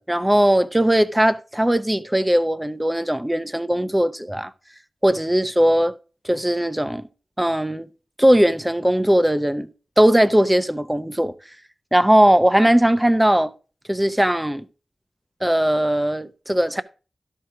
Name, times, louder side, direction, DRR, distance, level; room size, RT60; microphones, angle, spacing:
voice 1, 0.0-4.5 5.0-5.9 6.2-7.1 7.4-7.9 8.2-9.7 10.0-11.3 11.9-13.5 13.9-14.6 15.4-16.8, right 1 dB, 10° right, 0.6 m, -19 dB
12.5 x 4.6 x 4.7 m
wide cardioid pair, 90°, 0 cm